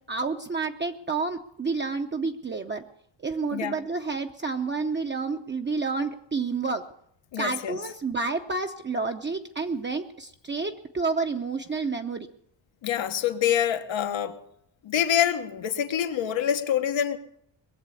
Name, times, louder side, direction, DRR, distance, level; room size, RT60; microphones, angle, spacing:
voice 1, 0.1-2.8 3.2-6.8 7.4-12.3, right 4 dB, 25° right, 0.7 m, -29 dB
voice 2, 7.3-7.8 12.8-14.4 14.8-17.2, left 10 dB, 85° left, 1.4 m, -26 dB
21.0 x 7.4 x 8.3 m
wide cardioid pair, 130°, 45 cm